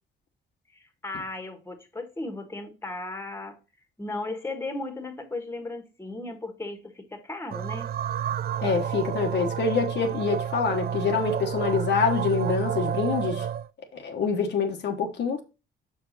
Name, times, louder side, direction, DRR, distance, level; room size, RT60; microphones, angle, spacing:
voice 1, 0.7-3.6 4.0-7.9, left 2 dB, 10° left, 1.5 m, -36 dB
sound 1, 7.5-13.7, right 9 dB, 50° right, 0.4 m, -30 dB
voice 2, 8.6-13.5 13.9-15.4, left 5 dB, 60° left, 1.3 m, -26 dB
6.2 x 4.9 x 4.1 m
cardioid pair, 90°, 20 cm